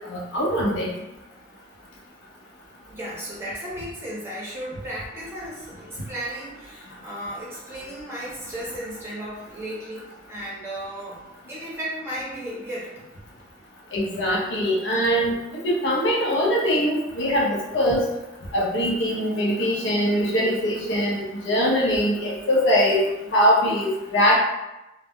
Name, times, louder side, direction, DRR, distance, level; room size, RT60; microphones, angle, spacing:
voice 1, 0.1-0.9 13.9-15.3 15.6-18.1 18.5-23.0 23.3-24.4, equal, 70° left, -3 dB, 0.6 m, -22 dB
voice 2, 2.9-11.2 11.5-12.9, right 1 dB, 15° right, -7 dB, 0.7 m, -35 dB
2.1 x 2.0 x 3.5 m, 0.97 s
head